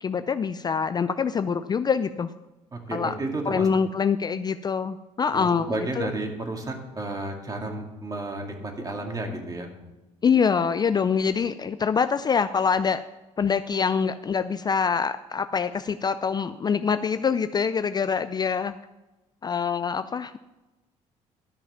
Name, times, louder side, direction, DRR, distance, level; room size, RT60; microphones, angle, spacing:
voice 1, 0.0-2.3 2.9-3.1 3.5-6.1 10.2-13.0 13.4-18.8 19.4-20.4, left 6 dB, 30° left, 12 dB, 0.4 m, -25 dB
voice 2, 2.7-3.7 5.3-9.7, right 2 dB, 25° right, 2 dB, 2.4 m, -32 dB
12.5 x 5.8 x 5.8 m, 1.1 s
supercardioid pair, 80°, 14 cm